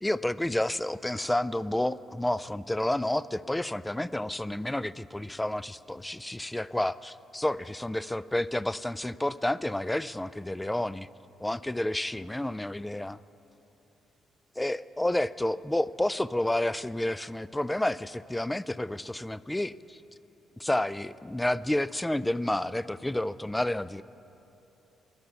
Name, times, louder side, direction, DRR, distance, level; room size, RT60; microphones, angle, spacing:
voice 1, 0.0-11.1 11.4-13.2 14.6-20.0 20.6-24.0, left 1 dB, 10° left, 18 dB, 0.3 m, -30 dB
22.0 x 8.1 x 7.0 m, 2.9 s
cardioid pair, 90°, 0 cm